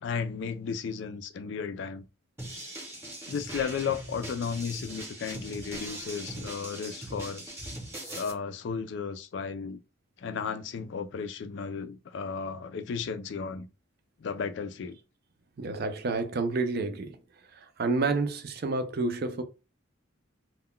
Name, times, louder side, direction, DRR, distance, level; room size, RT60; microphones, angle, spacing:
voice 1, 0.0-2.0 3.3-7.5 8.0-9.8 10.2-13.7 14.2-15.0, left 6 dB, 60° left, 0.3 m, -34 dB
sound 1, 2.4-8.3, right 1 dB, 15° right, 0.8 m, -40 dB
voice 2, 15.6-17.2 17.6-19.4, right 3 dB, 50° right, 0.4 m, -29 dB
2.2 x 2.2 x 3.6 m
head